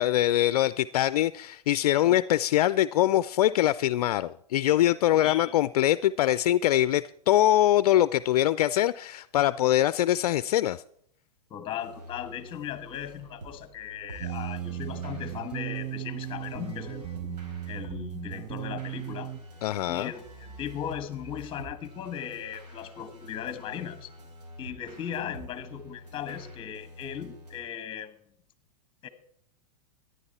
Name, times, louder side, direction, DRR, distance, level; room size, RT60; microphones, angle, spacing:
voice 1, 0.0-10.8 19.6-20.1, left 13 dB, 65° left, 16 dB, 0.4 m, -23 dB
voice 2, 5.1-5.5 11.5-17.4 17.7-19.3 19.9-24.1 24.6-28.1 29.0-29.1, left 9 dB, 25° left, 11 dB, 1.3 m, -37 dB
sound 1, 11.8-27.6, equal, 85° right, 4.5 m, -47 dB
sound 2, 14.2-19.4, right 12 dB, 55° right, 0.8 m, -36 dB
13.5 x 10.5 x 4.2 m, 0.66 s
hypercardioid pair, 120°, 21 cm